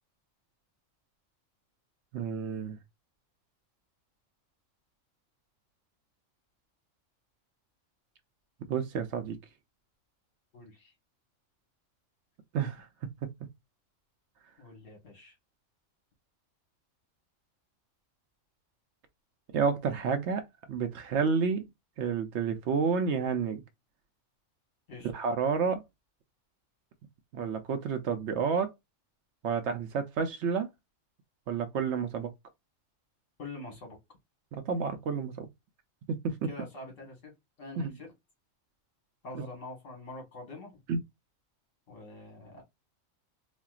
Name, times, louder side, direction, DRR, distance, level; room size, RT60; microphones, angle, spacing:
voice 1, 2.1-2.8 8.7-9.4 12.5-12.9 19.5-21.7 22.0-23.6 25.1-25.8 27.3-28.7 29.4-30.7 31.5-32.3 34.5-35.5 36.1-36.5 37.8-37.9 39.4-39.5 40.9-41.0, right 5 dB, 70° right, 0.8 m, -30 dB
voice 2, 10.5-10.9 14.6-15.4 24.9-25.1 33.4-34.0 36.5-37.3 37.6-38.1 39.2-40.8 41.9-42.6, left 2 dB, 70° left, 1.9 m, -45 dB
4.2 x 2.2 x 2.3 m
omnidirectional pair, 1.3 m